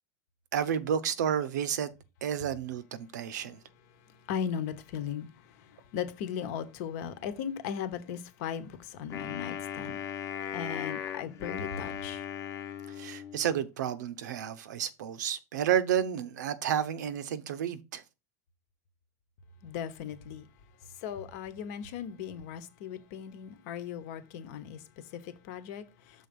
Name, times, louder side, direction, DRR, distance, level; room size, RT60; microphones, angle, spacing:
voice 1, 0.5-1.9 2.2-3.6 13.0-18.0, right 9 dB, 90° right, 0.7 m, -31 dB
voice 2, 4.0-10.0 10.5-12.2 19.6-20.5 20.8-26.3, left 8 dB, 65° left, 1.0 m, -38 dB
Wind instrument woodwind instrument, 9.1-13.5, left 9 dB, 35° left, 0.9 m, -38 dB
6.3 x 3.9 x 5.3 m
supercardioid pair, 130°, 9 cm